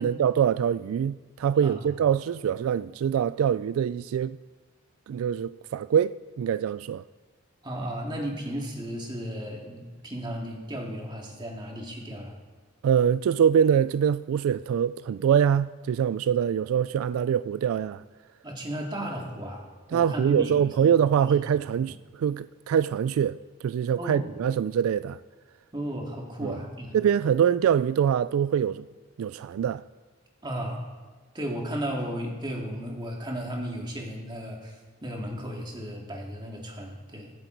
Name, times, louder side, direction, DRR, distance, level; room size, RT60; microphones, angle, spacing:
voice 1, 0.0-4.4 5.1-7.0 12.8-18.0 19.9-23.4 23.6-25.2 26.4-26.6 26.9-28.8 29.2-29.8, right 8 dB, 85° right, 0.3 m, -24 dB
voice 2, 7.6-12.3 18.4-19.6 19.9-21.3 24.0-24.3 25.7-27.0 30.4-30.8 31.3-34.8 35.0-37.3, equal, 20° right, 2.1 m, -34 dB
23.5 x 7.9 x 4.5 m
head